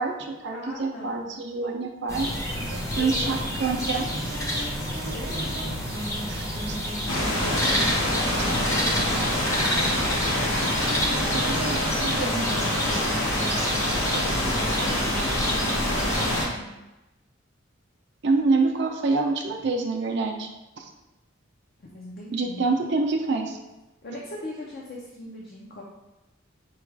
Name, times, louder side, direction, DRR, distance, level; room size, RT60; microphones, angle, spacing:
voice 1, 0.0-2.3 3.0-4.1 6.3-6.8 8.4-8.5 11.3-12.5 12.9-13.0 13.6-14.5 18.2-20.5 20.8-20.9 22.3-23.6, right 3 dB, 60° right, 2 dB, 0.5 m, -27 dB
voice 2, 0.5-1.2 2.9-3.5 5.1-5.6 8.3-9.4 10.6-11.6 14.5-16.7 21.9-22.7 24.0-25.8, left 1 dB, 50° left, -3 dB, 0.6 m, -40 dB
sound 1, 2.1-16.5, equal, 15° left, 0.7 m, -29 dB
sound 2, 2.5-15.5, right 1 dB, 90° right, 0.8 m, -38 dB
sound 3, 7.1-16.5, left 1 dB, 80° left, 1.3 m, -26 dB
4.8 x 2.3 x 4.5 m, 1.0 s
head